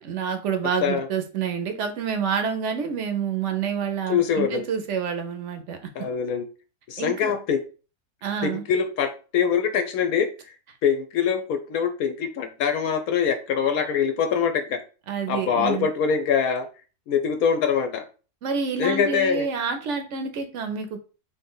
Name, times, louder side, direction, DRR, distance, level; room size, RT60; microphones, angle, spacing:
voice 1, 0.0-6.1 7.0-7.3 8.2-8.6 15.1-15.9 18.4-21.0, right 6 dB, 60° right, 6 dB, 0.9 m, -28 dB
voice 2, 4.1-4.6 5.9-6.5 6.9-7.6 8.4-10.6 10.8-14.8 15.3-16.7 17.1-18.0 18.8-19.5, left 7 dB, 75° left, 7 dB, 1.0 m, -24 dB
3.2 x 2.8 x 3.7 m, 0.35 s
omnidirectional pair, 1.6 m